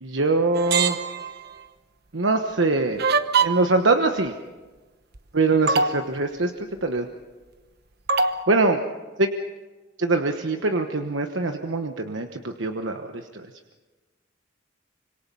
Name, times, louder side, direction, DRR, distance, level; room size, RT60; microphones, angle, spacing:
voice 1, 0.0-1.0 2.1-3.0 3.4-4.3 5.3-6.5 6.8-7.0 8.5-8.8 9.2-9.3 10.0-13.5, right 3 dB, 85° right, 5 dB, 1.2 m, -23 dB
sound 1, 0.5-1.5 3.0-3.8 5.1-5.2 5.7-6.1 8.1-8.4, right 4 dB, 60° right, 1.1 m, -22 dB
26.0 x 25.5 x 5.5 m, 1.3 s
head